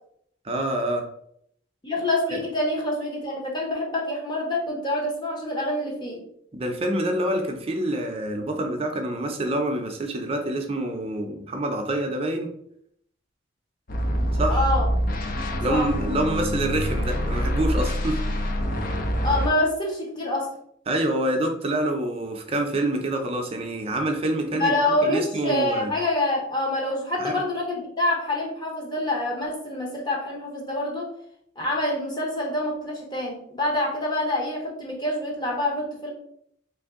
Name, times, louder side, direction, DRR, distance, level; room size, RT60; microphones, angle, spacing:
voice 1, 0.4-1.0 2.3-2.4 6.5-12.5 14.3-14.6 15.6-18.2 20.9-24.8 25.0-25.9 27.2-27.3, right 1 dB, 30° right, 3 dB, 0.5 m, -26 dB
voice 2, 1.8-6.2 14.5-14.9 15.7-15.9 19.2-20.5 24.5-31.1 31.6-36.1, left 1 dB, 25° left, -2 dB, 0.9 m, -26 dB
sound 1, 13.9-19.5, equal, 45° left, 0.5 m, -25 dB
3.2 x 2.6 x 3.5 m, 0.70 s
head